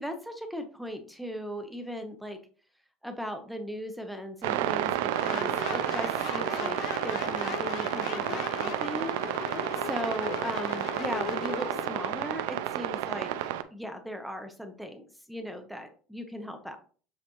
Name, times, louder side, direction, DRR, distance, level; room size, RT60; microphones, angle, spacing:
voice 1, 0.0-2.4 3.0-9.2 9.9-16.8, equal, ahead, 6 dB, 0.8 m, -38 dB
sound 1, 4.4-13.6, right 12 dB, 90° right, 0.5 m, -31 dB
sound 2, 5.1-12.1, left 12 dB, 55° left, 0.4 m, -38 dB
7.4 x 4.1 x 3.0 m, 0.41 s
cardioid pair, 140°, 0 cm